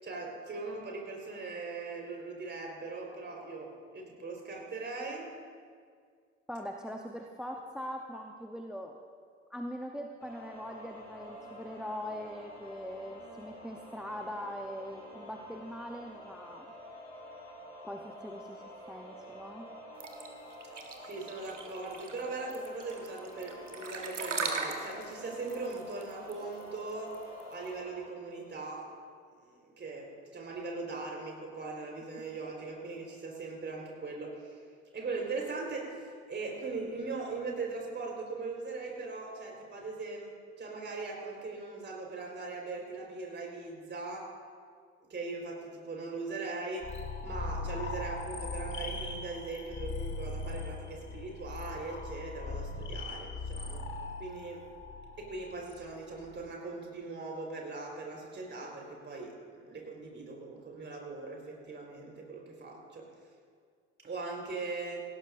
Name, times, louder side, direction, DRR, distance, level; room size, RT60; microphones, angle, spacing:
voice 1, 0.0-5.3 21.0-27.2 27.5-28.9 29.4-34.7 34.9-44.3 45.1-46.9 47.2-53.8 54.2-54.6 55.2-63.1 64.0-65.0, right 3 dB, 30° right, -1 dB, 4.3 m, -40 dB
voice 2, 6.5-9.0 9.5-16.7 17.8-19.7, equal, ahead, 2 dB, 0.8 m, -41 dB
sound 1, 10.2-28.0, left 1 dB, 85° left, 2.6 m, -49 dB
sound 2, 20.0-27.7, right 4 dB, 90° right, 1.1 m, -39 dB
sound 3, 46.8-56.4, left 3 dB, 35° left, 1.6 m, -40 dB
18.5 x 16.5 x 2.6 m, 2.1 s
figure-of-eight pair, 60°, 36 cm